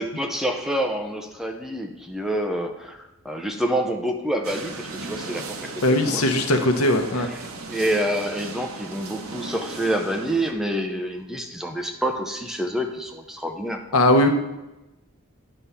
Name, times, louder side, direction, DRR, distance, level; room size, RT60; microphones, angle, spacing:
voice 1, 0.0-6.3 7.1-7.4 7.7-13.8, right 1 dB, ahead, 4 dB, 0.6 m, -27 dB
sound 1, 4.4-10.5, right 3 dB, 70° right, 0.9 m, -37 dB
voice 2, 5.8-7.3 13.9-14.3, left 1 dB, 85° left, 5 dB, 0.9 m, -19 dB
10.0 x 3.6 x 5.5 m, 0.97 s
head